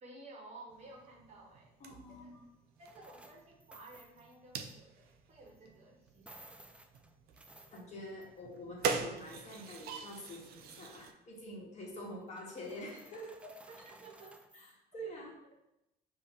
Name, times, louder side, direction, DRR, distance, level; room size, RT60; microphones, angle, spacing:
voice 1, 0.0-1.8 2.1-2.4 2.8-6.7 13.4-14.4, right 2 dB, 40° right, -1 dB, 1.2 m, -54 dB
sound 1, 0.7-11.1, right 5 dB, 70° right, 0.5 m, -44 dB
voice 2, 1.8-2.4 7.7-13.4 14.5-14.7 14.9-15.4, equal, 40° left, -2 dB, 1.3 m, -46 dB
sound 2, 2.8-4.7 5.5-5.6 6.1-8.5 8.8-10.0 10.3-10.8 12.1-14.7, right 1 dB, 5° right, 0.4 m, -58 dB
5.4 x 2.7 x 3.5 m, 0.87 s
cardioid pair, 110°, 17 cm